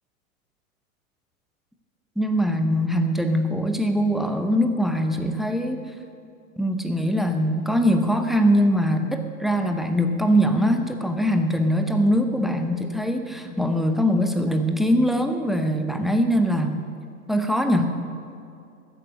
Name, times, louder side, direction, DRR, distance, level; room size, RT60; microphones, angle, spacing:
voice 1, 2.2-5.9 6.6-16.8 17.3-18.0, equal, ahead, 6 dB, 0.7 m, -22 dB
13.5 x 8.0 x 6.8 m, 2.5 s
hypercardioid pair, 105°, 44 cm